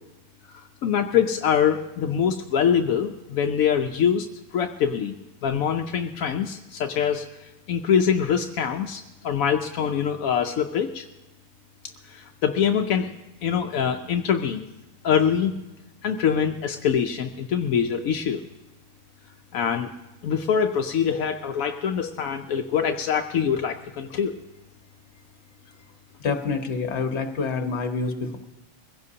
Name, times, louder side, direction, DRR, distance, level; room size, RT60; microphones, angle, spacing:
voice 1, 0.5-4.3 4.5-5.1 5.4-7.2 7.7-11.1 12.1-13.1 13.4-14.7 15.0-15.5 16.0-18.4 19.5-19.9 20.2-24.3, left 7 dB, 80° left, 5 dB, 1.1 m, -24 dB
voice 2, 26.2-28.4, left 4 dB, 55° left, 6 dB, 1.4 m, -27 dB
23.0 x 16.0 x 2.8 m, 1.0 s
omnidirectional pair, 1.4 m